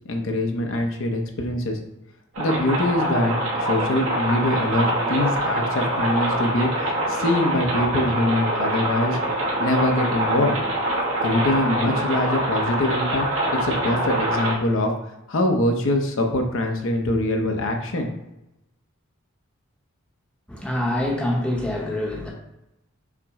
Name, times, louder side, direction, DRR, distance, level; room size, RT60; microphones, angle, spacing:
voice 1, 0.1-1.8 2.4-6.7 7.1-9.2 9.6-10.6 11.2-14.9 15.3-18.1, left 1 dB, 60° left, 3 dB, 0.7 m, -23 dB
sound 1, 2.4-14.5, right 1 dB, 75° right, 1.0 m, -24 dB
voice 2, 20.5-22.3, left 1 dB, 5° left, -2 dB, 0.7 m, -25 dB
5.8 x 2.0 x 3.6 m, 0.91 s
head